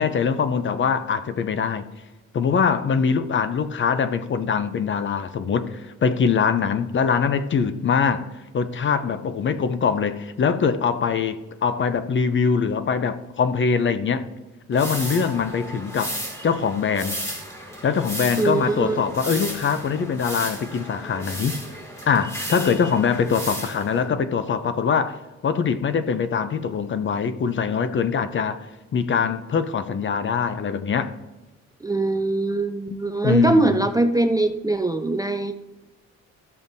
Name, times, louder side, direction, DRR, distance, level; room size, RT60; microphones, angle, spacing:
voice 1, 0.0-1.9 2.3-8.3 8.5-14.2 14.7-17.2 17.8-21.6 22.1-28.6 28.9-31.1 32.9-33.8, left 6 dB, 40° left, 0.6 m, -23 dB
sound 1, 14.7-24.1, right 1 dB, 10° left, 2.2 m, -34 dB
voice 2, 18.4-19.0 31.8-35.5, right 2 dB, 10° right, 0.4 m, -22 dB
13.0 x 6.9 x 2.7 m
cardioid pair, 90°, 30 cm